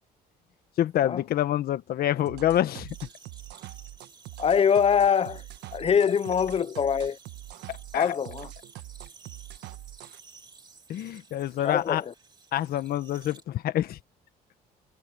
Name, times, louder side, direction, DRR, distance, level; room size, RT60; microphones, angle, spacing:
voice 1, 0.8-3.0 7.7-8.1 10.9-12.0 12.5-14.0, left 12 dB, 65° left, 1.5 m, -27 dB
sound 1, 2.3-10.2, right 16 dB, 85° right, 1.6 m, -43 dB
sound 2, 2.9-13.4, right 4 dB, 25° right, 3.5 m, -53 dB
voice 2, 4.4-5.4 5.7-7.2 7.9-8.5 11.6-12.1, left 7 dB, 35° left, 1.0 m, -23 dB
cardioid pair, 110°, 17 cm